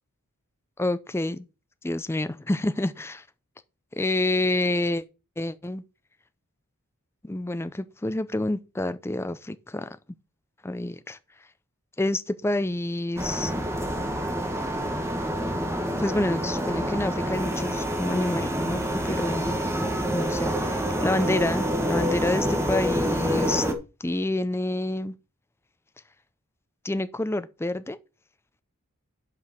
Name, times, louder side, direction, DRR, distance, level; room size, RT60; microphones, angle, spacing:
voice 1, 0.8-1.5 1.8-3.2 3.9-5.0 5.4-5.8 7.3-10.0 10.6-11.2 12.0-13.5 16.0-19.5 20.1-23.7 24.0-25.2 26.8-28.0, left 1 dB, 10° left, 0.4 m, -28 dB
sound 1, 13.2-23.7, equal, 10° right, 1.2 m, -27 dB
8.2 x 4.9 x 5.7 m
head